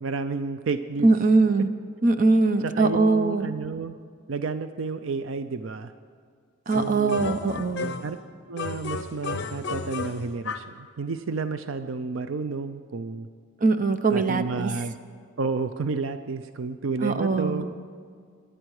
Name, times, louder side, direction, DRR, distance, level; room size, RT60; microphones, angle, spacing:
voice 1, 0.0-1.1 2.6-4.0 4.3-5.9 6.7-7.3 8.0-8.2 8.5-13.3 14.1-14.9 15.4-17.8, right 4 dB, 70° right, 10 dB, 0.5 m, -31 dB
voice 2, 1.0-1.7 2.0-3.5 6.7-7.9 13.6-14.7 17.0-17.6, right 3 dB, 40° right, 9 dB, 0.8 m, -22 dB
sound 1, 6.7-8.2 8.6-10.8, left 4 dB, 60° left, 0.7 m, -34 dB
24.0 x 10.0 x 4.8 m, 2.1 s
head